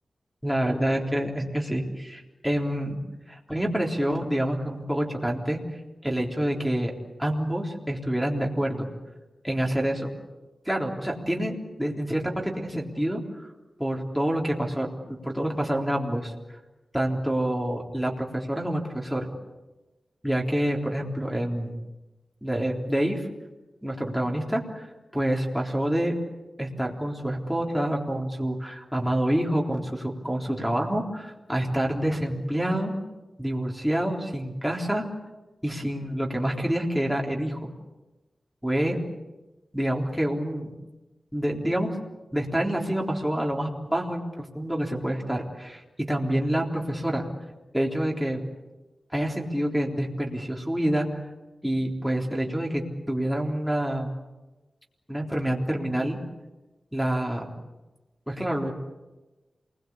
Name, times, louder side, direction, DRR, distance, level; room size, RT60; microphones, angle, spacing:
voice 1, 0.4-3.0 3.5-5.6 6.0-6.9 7.2-8.9 9.4-10.1 10.7-13.5 13.8-16.3 16.9-19.3 20.2-21.7 22.4-23.2 23.8-24.9 25.1-26.1 26.6-33.0 33.4-35.1 35.6-37.6 38.6-39.0 39.7-40.7 41.3-41.9 42.3-47.3 47.7-48.4 49.1-51.1 51.6-52.8 53.1-54.1 55.1-56.2 56.9-57.5 58.3-58.7, right 1 dB, ahead, -1 dB, 3.7 m, -27 dB
27.5 x 21.5 x 8.5 m, 1.1 s
wide cardioid pair, 145°, 0 cm